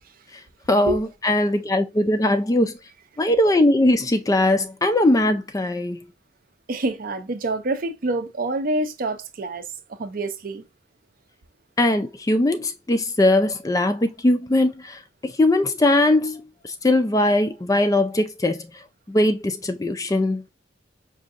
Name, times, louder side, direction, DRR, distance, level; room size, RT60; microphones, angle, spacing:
voice 1, 0.7-2.8 3.2-6.0 11.8-16.5 16.8-18.7 19.1-20.4, left 1 dB, 20° left, 0.3 m, -20 dB
voice 2, 6.7-10.6, right 2 dB, 50° right, 0.5 m, -27 dB
4.9 x 2.7 x 2.5 m
head